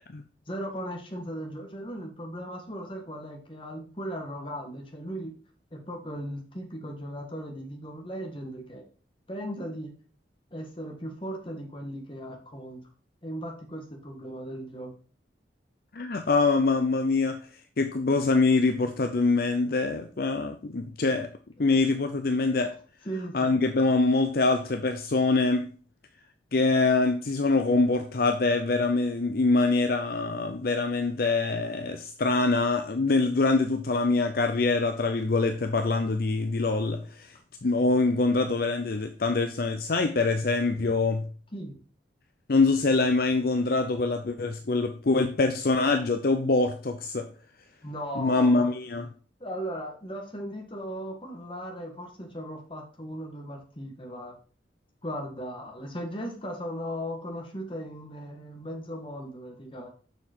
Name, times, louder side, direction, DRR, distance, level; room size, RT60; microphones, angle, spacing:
voice 1, 0.5-5.3 5.7-8.8 9.3-9.9 10.5-12.8 13.2-14.9 23.0-23.6 41.5-41.8 47.8-48.7 49.4-54.4 55.0-59.9, equal, 30° left, 1.7 m, -37 dB
voice 2, 15.9-17.4 17.8-21.3 21.6-22.7 23.3-25.7 26.5-37.3 37.6-41.3 42.5-47.3 48.2-49.1, left 3 dB, 55° left, 0.6 m, -24 dB
6.9 x 5.9 x 4.5 m
head